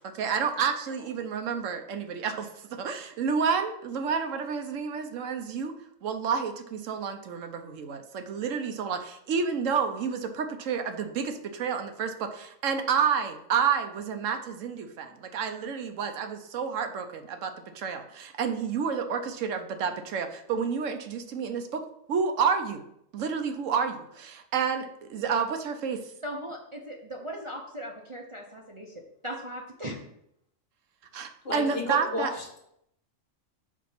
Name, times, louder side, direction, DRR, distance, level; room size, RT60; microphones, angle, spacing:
voice 1, 0.1-5.7 6.0-21.8 22.1-22.8 23.1-26.0 31.1-32.3, right 6 dB, 80° right, 6 dB, 1.1 m, -30 dB
voice 2, 26.2-28.9 29.2-30.0, equal, 30° right, -1 dB, 0.6 m, -38 dB
voice 3, 31.4-32.6, left 2 dB, 50° left, 0 dB, 1.4 m, -32 dB
5.1 x 4.5 x 5.6 m, 0.75 s
omnidirectional pair, 1.3 m